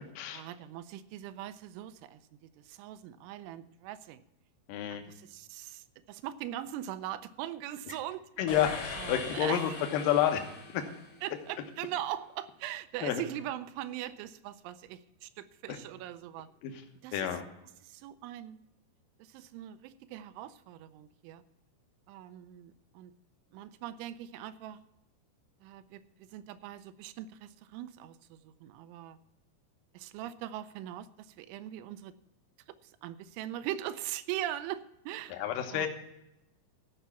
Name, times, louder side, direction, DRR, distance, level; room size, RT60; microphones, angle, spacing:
voice 1, 0.3-2.2 2.6-4.2 5.1-8.3 8.9-9.8 11.2-16.5 17.0-17.4 17.8-18.6 19.2-21.4 22.1-23.1 23.5-24.8 25.6-29.2 29.9-32.1 32.8-35.4 35.7-35.9, right 12 dB, 85° right, 12 dB, 3.1 m, -41 dB
voice 2, 4.7-5.0 7.9-8.0 8.4-10.4 10.7-10.8 13.0-13.2 16.6-16.7 17.1-17.4 35.3-35.9, left 10 dB, 70° left, 5 dB, 2.1 m, -29 dB
sound 1, 8.5-11.6, left 4 dB, 50° left, 1.3 m, -42 dB
14.5 x 5.6 x 7.0 m, 0.85 s
omnidirectional pair, 5.4 m